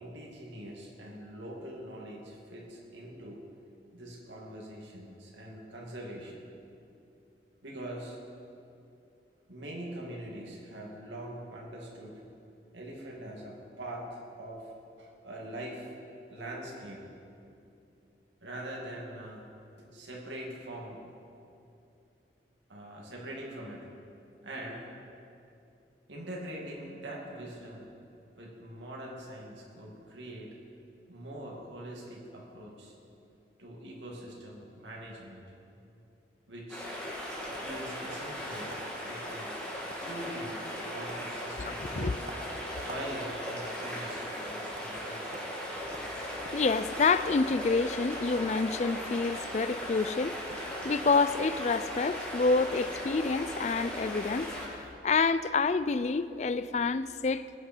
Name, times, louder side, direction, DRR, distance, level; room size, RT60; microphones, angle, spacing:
voice 1, 0.0-3.4 3.9-6.5 7.6-8.2 9.5-12.2 12.7-14.7 15.0-15.9 16.3-17.0 18.4-19.5 19.7-21.0 22.7-23.9 24.4-24.9 26.1-27.9 28.4-30.5 31.1-32.9 33.6-35.4 36.5-36.9 37.5-38.8 39.0-39.5 40.0-42.2 42.8-45.4, right 1 dB, 85° right, -2 dB, 2.4 m, -43 dB
sound 1, 36.7-54.9, equal, 5° left, 2.4 m, -38 dB
sound 2, 37.5-38.4 38.7-38.9 39.3-39.5 39.7-40.2 40.5-40.8 41.1-41.3 41.6-43.1 43.4-44.2 44.7-44.9 45.3-45.5 45.9-46.6 47.4-47.6 48.3-48.6 48.9-49.4 50.2-50.3 50.5-50.7 51.1-51.3, right 3 dB, 50° right, 1.0 m, -49 dB
voice 2, 41.6-42.1 46.5-57.5, left 4 dB, 40° left, 14 dB, 0.4 m, -28 dB
20.0 x 9.4 x 4.5 m, 2.7 s
head